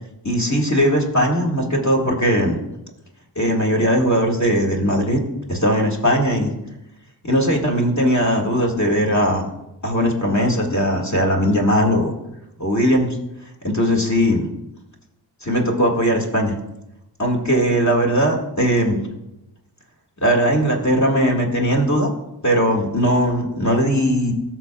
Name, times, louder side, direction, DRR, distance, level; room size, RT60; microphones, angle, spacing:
voice 1, 0.2-2.6 3.4-5.2 5.5-6.5 7.2-9.4 9.8-12.1 12.6-13.1 13.6-14.5 15.4-16.6 17.2-19.1 20.2-22.1 22.4-24.3, equal, 40° left, 0 dB, 1.9 m, -19 dB
14.0 x 6.2 x 2.4 m, 0.90 s
cardioid pair, 45°, 44 cm